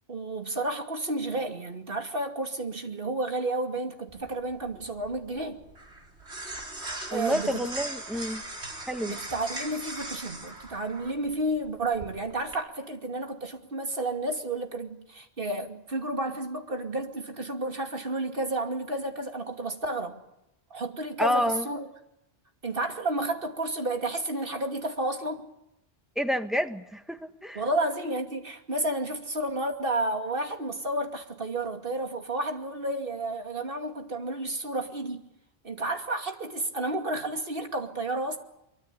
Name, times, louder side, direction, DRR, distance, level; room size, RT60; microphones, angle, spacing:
voice 1, 0.1-5.6 7.1-7.7 9.0-20.2 20.7-21.9 22.6-25.5 27.5-35.2 35.6-38.4, right 2 dB, 55° right, 2.8 m, -31 dB
sound 1, 4.1-12.5, right 1 dB, 75° right, 4.4 m, -40 dB
voice 2, 7.1-8.4 8.8-9.2 21.2-21.7 26.1-27.6, equal, ahead, 1.4 m, -29 dB
24.5 x 24.0 x 8.5 m
omnidirectional pair, 1.1 m